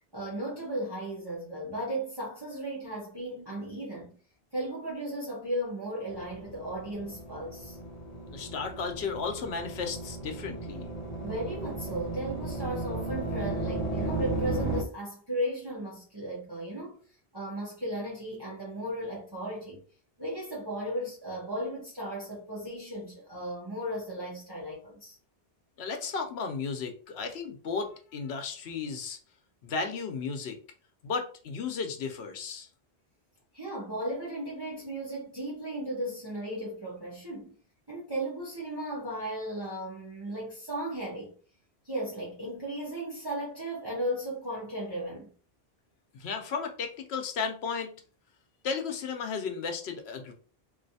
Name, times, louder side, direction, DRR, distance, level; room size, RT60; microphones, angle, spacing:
voice 1, 0.1-4.1 4.5-7.8 11.2-17.0 17.3-19.8 20.2-25.2 33.5-37.5 37.9-41.3 41.8-45.3, right 1 dB, 25° right, 1.0 m, -35 dB
sound 1, 6.1-14.8, right 2 dB, 45° left, 0.7 m, -35 dB
voice 2, 8.3-10.9 25.8-29.2 29.6-30.6 31.0-32.7 46.1-48.0 48.6-50.3, left 5 dB, 85° left, 0.9 m, -34 dB
3.0 x 2.6 x 2.7 m
omnidirectional pair, 1.1 m